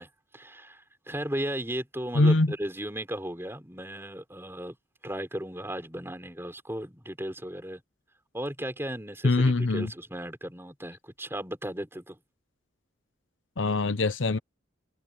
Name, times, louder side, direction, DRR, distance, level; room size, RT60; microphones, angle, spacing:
voice 1, 0.0-4.8 5.0-7.8 8.3-12.2, right 1 dB, 10° right, 4.6 m, -36 dB
voice 2, 2.1-2.5 9.2-9.9 13.6-14.4, left 2 dB, 70° left, 0.8 m, -23 dB
open air
head